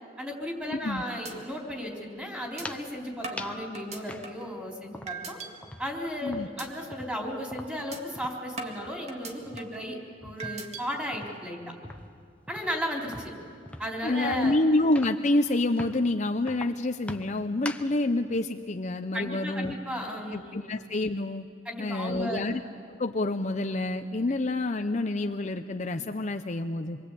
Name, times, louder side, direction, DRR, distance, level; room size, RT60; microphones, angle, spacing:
voice 1, 0.2-5.4 5.8-10.0 10.2-11.6 12.5-13.3 13.8-14.5 19.1-20.7 21.7-22.4, equal, 10° right, -1 dB, 4.1 m, -35 dB
sound 1, 0.6-0.9 1.2-1.3 1.8-1.9 2.6-2.7 3.2-4.5 5.1-5.5 5.9-6.2 6.6-6.7 7.1-7.3 7.9-8.0 8.6-9.8 10.4-10.8, right 4 dB, 40° right, 2.0 m, -39 dB
voice 2, 0.7-1.0 6.2-6.5 14.0-19.7 20.3-21.5 21.8-22.6 22.9-27.0, left 2 dB, 40° left, 6 dB, 0.7 m, -28 dB
sound 2, 2.5-2.9 3.4-3.7 4.1-5.3 5.6-8.5 8.8-9.0 9.4-10.8 11.1-15.3 15.8-16.1 16.5-18.0, left 1 dB, 5° left, 0.9 m, -43 dB
26.5 x 23.0 x 8.4 m, 2.2 s
head